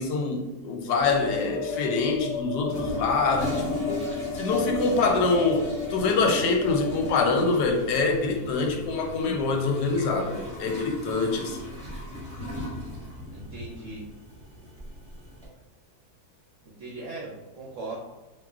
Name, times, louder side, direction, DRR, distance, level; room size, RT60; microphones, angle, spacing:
voice 1, 0.0-5.7 5.9-11.7, left 3 dB, 85° left, 3 dB, 1.2 m, -25 dB
sound 1, 1.0-7.2, left 4 dB, 55° left, 1.6 m, -33 dB
Toilet flush, 2.7-15.5, left 2 dB, 5° left, 1.0 m, -37 dB
voice 2, 4.8-5.5 13.3-14.1 16.6-17.9, right 3 dB, 65° right, -4 dB, 0.8 m, -39 dB
3.9 x 2.4 x 2.3 m, 1.1 s
omnidirectional pair, 1.7 m